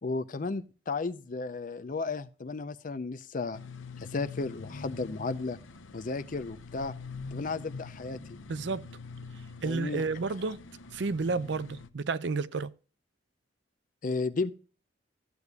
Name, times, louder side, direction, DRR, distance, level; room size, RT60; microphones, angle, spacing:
voice 1, 0.0-3.6 4.0-5.6 5.9-6.9 7.3-8.4 9.6-10.0 14.0-14.5, left 3 dB, 45° left, 0.5 m, -34 dB
sound 1, 3.5-11.9, left 4 dB, 90° left, 0.7 m, -45 dB
voice 2, 8.5-8.9 9.6-10.6 10.9-12.7, right 4 dB, 65° right, 0.5 m, -31 dB
14.0 x 8.1 x 2.3 m
head